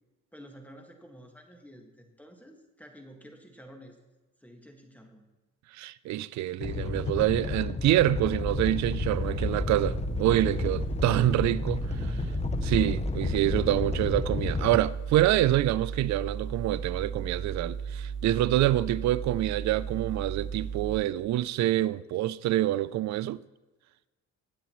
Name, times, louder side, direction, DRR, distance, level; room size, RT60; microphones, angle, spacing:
voice 1, 0.3-4.0 4.4-5.3 10.4-10.6 11.7-11.8 12.4-12.7, equal, 5° left, 1.7 m, -50 dB
voice 2, 5.7-11.8 12.6-23.4, right 14 dB, 65° right, 0.4 m, -26 dB
Animal, 6.6-14.8, left 5 dB, 20° left, 0.6 m, -32 dB
sound 1, 8.4-21.0, right 6 dB, 40° right, 1.0 m, -36 dB
21.5 x 8.3 x 3.1 m
cardioid pair, 90°, 30 cm